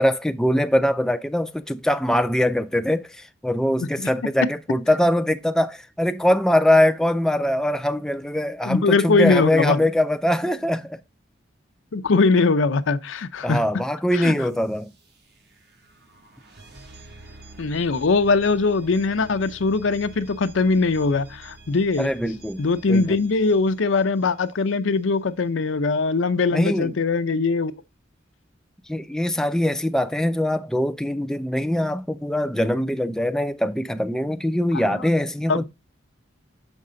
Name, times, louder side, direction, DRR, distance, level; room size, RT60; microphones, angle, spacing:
voice 1, 0.0-11.0 13.4-14.9 22.0-22.6 22.9-23.2 26.5-26.9 28.9-35.6, left 1 dB, 5° left, 0.3 m, -22 dB
voice 2, 8.7-9.8 11.9-13.6 14.1-14.3 17.6-22.1 22.6-27.7 34.7-35.1 35.5-35.6, left 3 dB, 80° left, 0.6 m, -21 dB
sound 1, 14.4-25.2, right 2 dB, 55° right, 1.2 m, -47 dB
6.5 x 5.3 x 3.7 m
head